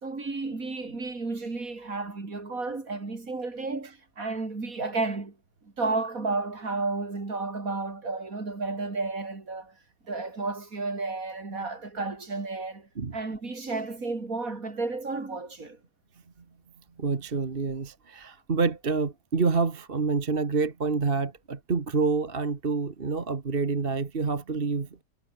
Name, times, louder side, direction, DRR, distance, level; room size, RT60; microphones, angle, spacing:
voice 1, 0.0-5.4 5.6-9.7 10.0-15.8, right 3 dB, 50° right, 3.9 m, -32 dB
voice 2, 17.0-25.0, right 4 dB, 35° right, 1.6 m, -27 dB
omnidirectional pair, 1.8 m